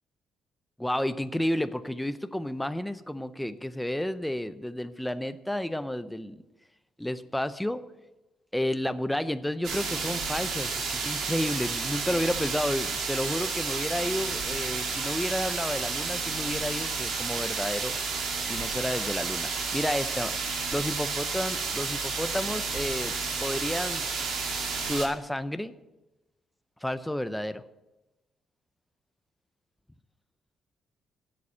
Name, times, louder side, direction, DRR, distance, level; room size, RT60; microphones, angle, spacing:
voice 1, 0.8-6.4 7.0-7.8 8.5-17.9 18.5-20.3 20.7-23.1 23.4-24.3 24.8-25.7 26.8-27.6, left 1 dB, 5° left, 12 dB, 0.6 m, -31 dB
sound 1, 9.6-25.1, right 4 dB, 75° right, 2.2 m, -31 dB
8.1 x 7.6 x 8.4 m, 1.0 s
cardioid pair, 90°, 0 cm